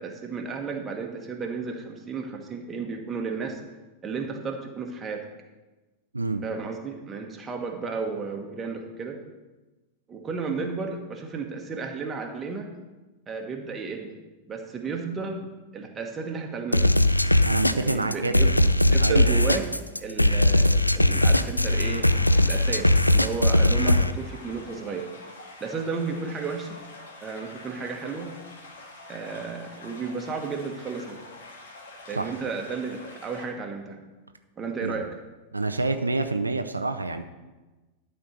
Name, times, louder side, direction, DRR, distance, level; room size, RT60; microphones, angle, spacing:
voice 1, 0.0-3.6 4.0-5.2 6.4-9.2 10.1-12.7 13.3-14.2 14.5-17.0 17.7-18.5 18.9-19.7 20.0-25.1 25.6-26.8 27.2-28.3 29.1-31.2 32.1-34.0 34.6-35.1, right 4 dB, 20° right, 2 dB, 1.4 m, -33 dB
sound 1, 16.7-24.1, left 1 dB, 85° left, 0.4 m, -20 dB
voice 2, 17.4-18.6 19.0-19.3 32.1-32.3 34.8-35.0 35.5-37.2, right 3 dB, 80° right, 7 dB, 0.5 m, -27 dB
sound 2, 21.6-33.5, left 2 dB, 60° left, 1.8 m, -46 dB
12.0 x 4.5 x 6.6 m, 1.2 s
figure-of-eight pair, 90°, 0 cm